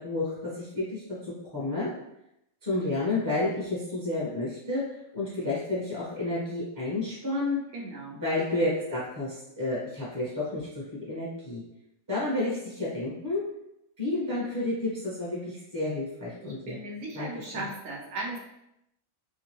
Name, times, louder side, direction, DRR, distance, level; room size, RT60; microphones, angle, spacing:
voice 1, 0.0-1.9 2.6-4.8 5.1-7.6 8.1-11.6 12.1-13.4 14.0-16.8 17.1-17.6, left 2 dB, 20° right, -7 dB, 0.6 m, -31 dB
voice 2, 7.7-8.2 16.4-18.4, right 2 dB, 70° right, -2 dB, 1.0 m, -37 dB
3.0 x 2.5 x 2.9 m, 0.82 s
omnidirectional pair, 1.5 m